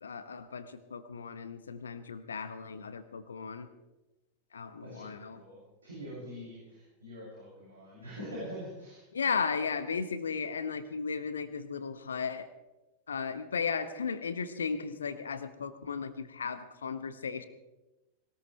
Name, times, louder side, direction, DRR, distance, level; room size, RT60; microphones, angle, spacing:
voice 1, 0.0-3.7 4.5-5.4 9.1-12.5 13.1-17.5, left 5 dB, 70° left, 11 dB, 1.2 m, -35 dB
voice 2, 4.8-9.0, equal, 75° right, -6 dB, 7.1 m, -44 dB
21.5 x 19.0 x 3.4 m, 1.0 s
figure-of-eight pair, 90°, 0 cm